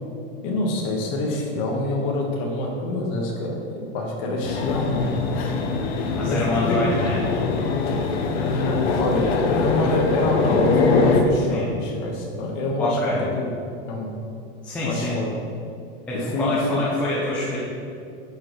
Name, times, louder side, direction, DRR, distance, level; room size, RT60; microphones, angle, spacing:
voice 1, 0.4-5.1 6.2-6.8 8.3-13.5 13.9-14.1 14.8-15.3 16.1-16.8, left 2 dB, 35° left, 0 dB, 1.3 m, -26 dB
sound 1, 4.4-11.2, left 4 dB, 70° left, 1.0 m, -23 dB
voice 2, 6.1-7.2 11.5-11.7 12.8-13.2 14.6-15.2 16.1-17.6, left 1 dB, 5° left, -7 dB, 0.4 m, -26 dB
10.0 x 6.4 x 3.1 m, 2.6 s
supercardioid pair, 175°, 32 cm